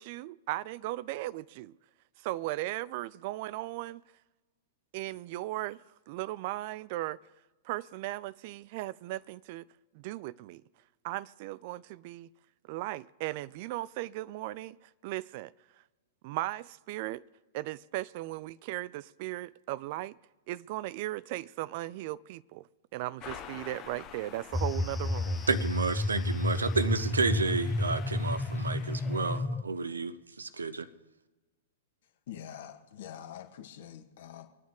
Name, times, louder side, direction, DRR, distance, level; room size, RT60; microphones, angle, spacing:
voice 1, 0.0-1.7 2.2-4.0 4.9-5.8 6.1-7.2 7.7-9.6 9.9-10.6 11.0-12.3 12.7-14.8 15.0-15.5 16.2-17.2 17.5-20.2 20.5-22.6 22.9-25.4, right 17 dB, 45° right, 0.4 m, -37 dB
sound 1, 23.2-29.4, left 7 dB, 30° left, 1.1 m, -49 dB
sound 2, 24.5-29.6, left 2 dB, 5° left, 0.6 m, -31 dB
voice 2, 25.5-30.9, right 4 dB, 75° right, 0.8 m, -31 dB
voice 3, 32.3-34.5, left 10 dB, 50° left, 1.5 m, -45 dB
25.5 x 9.2 x 3.7 m
figure-of-eight pair, 105°, 0 cm